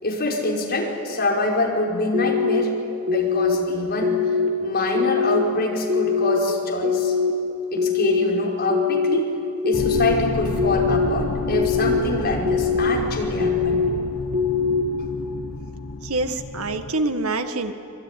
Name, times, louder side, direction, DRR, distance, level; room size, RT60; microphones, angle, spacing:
voice 1, 0.0-2.7 3.1-4.1 4.6-7.1 7.7-9.3 9.6-13.8, left 2 dB, 45° left, -2 dB, 5.1 m, -25 dB
sound 1, 2.1-2.6 3.1-3.6 4.0-4.5 4.9-5.4 5.9-6.4 6.8-7.3 7.8-8.2 8.7-9.2 9.6-10.1 10.6-11.1 11.5-12.0 12.5-12.9 13.4-13.9 14.3-14.8, left 6 dB, 55° right, 2.8 m, -21 dB
sound 2, 9.7-16.9, left 2 dB, 75° left, 1.3 m, -30 dB
voice 2, 16.0-17.7, right 2 dB, 75° right, 7 dB, 1.7 m, -25 dB
25.5 x 23.5 x 9.9 m, 2.8 s
head